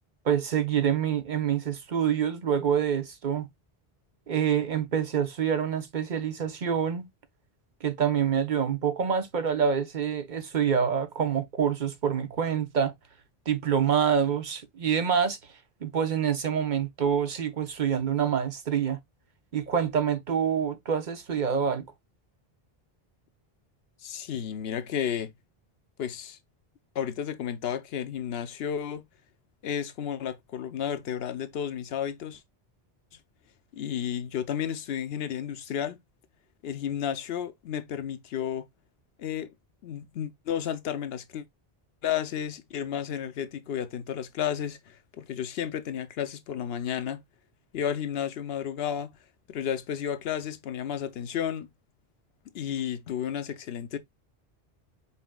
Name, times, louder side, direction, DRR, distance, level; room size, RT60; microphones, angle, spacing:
voice 1, 0.2-3.5 4.3-7.1 7.8-12.9 13.5-15.4 15.8-19.0 19.5-21.8, right 8 dB, 50° right, 0.9 m, -26 dB
voice 2, 24.0-25.3 26.0-26.4 26.9-29.1 29.6-32.4 33.7-36.0 36.6-38.7 39.2-39.5 39.8-41.4 42.0-47.2 47.7-49.1 49.5-51.7 52.5-54.0, left 9 dB, 75° left, 0.9 m, -32 dB
5.7 x 4.1 x 2.2 m
omnidirectional pair, 1.0 m